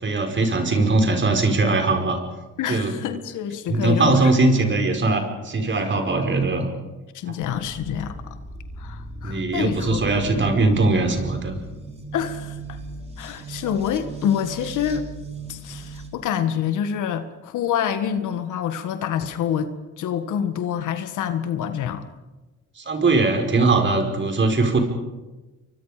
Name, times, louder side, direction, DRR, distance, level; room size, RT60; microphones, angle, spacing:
voice 1, 0.0-2.2 2.7-3.0 3.7-6.7 9.2-11.6 22.8-24.8, right 3 dB, 40° right, 4 dB, 5.0 m, -20 dB
voice 2, 2.6-4.3 7.1-8.2 8.8-10.2 12.1-12.8 13.2-15.1 15.5-22.1, left 8 dB, 80° left, 9 dB, 1.9 m, -27 dB
sound 1, 7.4-16.1, right 2 dB, 20° right, 3.6 m, -37 dB
29.5 x 24.0 x 5.1 m, 1.2 s
cardioid pair, 90°, 30 cm